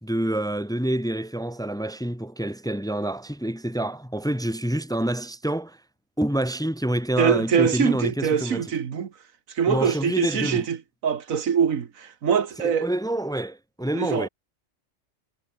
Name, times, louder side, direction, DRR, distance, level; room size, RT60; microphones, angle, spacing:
voice 1, 0.0-5.8 6.2-8.6 9.7-10.7 12.6-14.3, right 1 dB, 5° left, 1.3 m, -27 dB
voice 2, 7.2-9.1 9.5-12.9 13.9-14.3, right 7 dB, 80° right, 1.7 m, -24 dB
omnidirectional pair, 1.4 m